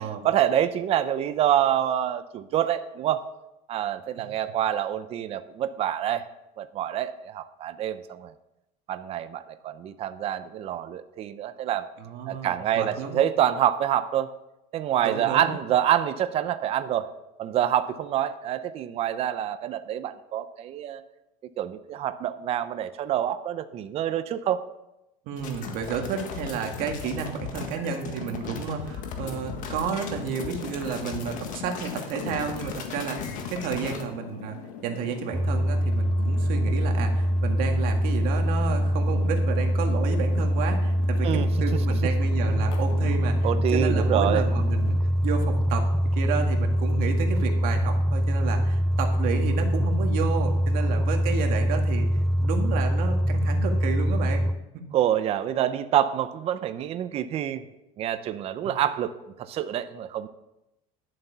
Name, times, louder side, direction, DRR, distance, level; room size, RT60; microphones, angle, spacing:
voice 1, 0.0-3.3 3.7-6.3 6.6-8.3 8.9-11.9 12.3-14.3 14.7-17.1 17.4-21.0 21.6-24.6 41.2-41.5 43.4-44.5 54.9-57.6 58.0-59.1 59.4-60.3, right 11 dB, 35° right, 11 dB, 0.6 m, -26 dB
voice 2, 12.0-13.2 15.0-15.5 25.3-43.3 43.7-44.9 45.2-45.9 46.1-52.1 52.4-54.5 54.7-54.8 58.6-58.7, right 6 dB, 60° right, 4 dB, 1.9 m, -31 dB
sound 1, 25.4-34.0, left 6 dB, 50° left, 1.7 m, -37 dB
sound 2, 29.2-45.0, left 8 dB, 85° left, 1.2 m, -43 dB
sound 3, 35.3-54.5, equal, ahead, 0.3 m, -24 dB
11.5 x 7.6 x 5.6 m, 0.91 s
cardioid pair, 150°, 17 cm